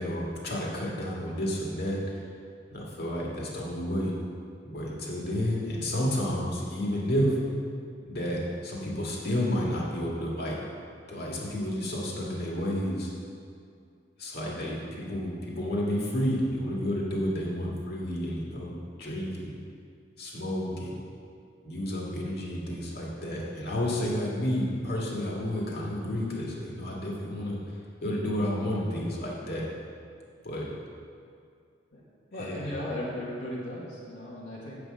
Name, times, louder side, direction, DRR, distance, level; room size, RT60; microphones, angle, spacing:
voice 1, 0.0-2.2 2.7-4.1 4.7-7.4 8.1-10.6 11.1-13.1 14.2-18.7 19.0-19.5 20.2-21.0 21.6-27.6 28.0-29.6 30.4-30.7 32.4-32.7, equal, 60° left, -4 dB, 2.0 m, -31 dB
voice 2, 32.3-34.8, left 1 dB, 75° left, -7 dB, 1.6 m, -36 dB
7.8 x 6.1 x 7.6 m, 2.3 s
head